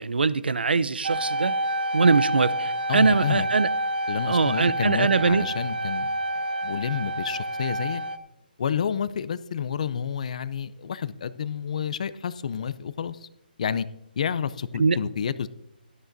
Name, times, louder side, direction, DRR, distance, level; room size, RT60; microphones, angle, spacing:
voice 1, 0.0-1.5 1.9-3.7 4.3-5.4 14.8-15.0, right 4 dB, 85° right, 0.7 m, -22 dB
sound 1, 1.0-8.2, right 1 dB, 70° right, 1.0 m, -28 dB
voice 2, 2.9-3.5 4.1-6.1 6.6-8.0 8.6-13.3 13.6-13.9 14.2-15.5, left 7 dB, 45° left, 0.5 m, -29 dB
17.5 x 13.0 x 2.7 m
hypercardioid pair, 165°, 5 cm